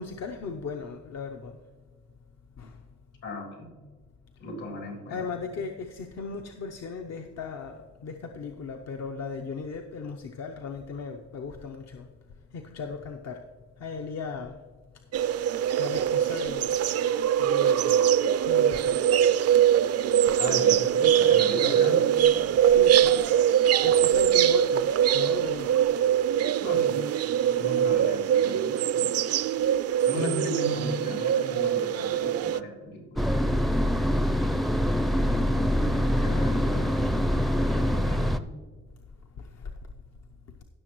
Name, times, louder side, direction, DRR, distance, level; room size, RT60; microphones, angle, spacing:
voice 1, 0.0-1.6 2.6-2.8 5.1-12.1 12.5-13.5 13.8-14.6 15.8-16.7 17.4-18.1 18.4-19.0 22.5-23.2 23.8-25.7 39.4-39.7, left 5 dB, 60° left, 3 dB, 0.8 m, -37 dB
voice 2, 3.2-3.7 4.4-5.4 20.4-22.6 26.6-27.0 27.4-29.1 30.1-33.2 35.8-38.4, left 1 dB, 75° left, 1 dB, 3.3 m, -36 dB
sound 1, 15.1-32.6, right 10 dB, 55° right, 0.4 m, -23 dB
sound 2, 33.2-38.4, equal, ahead, 0.5 m, -24 dB
16.5 x 6.5 x 3.0 m, 1.4 s
cardioid pair, 90°, 30 cm